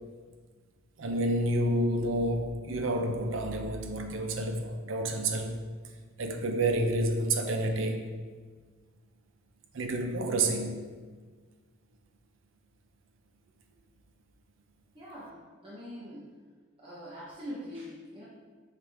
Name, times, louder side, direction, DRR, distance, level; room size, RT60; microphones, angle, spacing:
voice 1, 1.0-5.6 6.2-8.1 9.7-10.8, right 1 dB, 80° right, 5 dB, 0.6 m, -29 dB
voice 2, 14.9-16.3 16.8-18.3, equal, 25° right, -7 dB, 0.9 m, -43 dB
5.8 x 4.8 x 3.5 m, 1.5 s
head